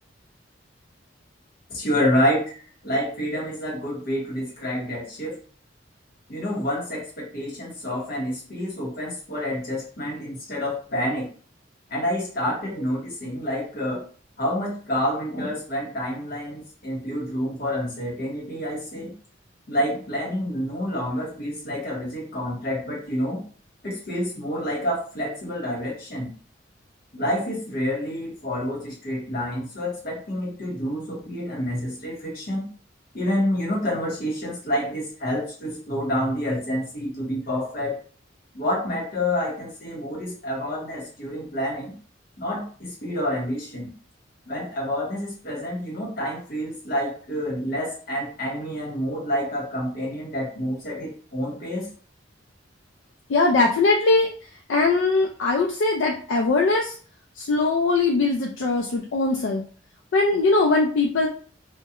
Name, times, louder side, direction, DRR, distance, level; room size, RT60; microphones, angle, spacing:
voice 1, 1.7-5.4 6.3-11.3 11.9-14.0 14.4-19.1 19.7-23.4 23.8-26.3 27.1-32.6 33.1-38.0 38.5-41.9 42.4-43.9 44.5-51.9, equal, 55° left, -3 dB, 1.1 m, -28 dB
voice 2, 53.3-54.3 54.7-56.9 57.4-59.6 60.1-61.3, left 3 dB, 70° left, 0 dB, 0.4 m, -21 dB
2.3 x 2.1 x 2.8 m, 0.41 s
head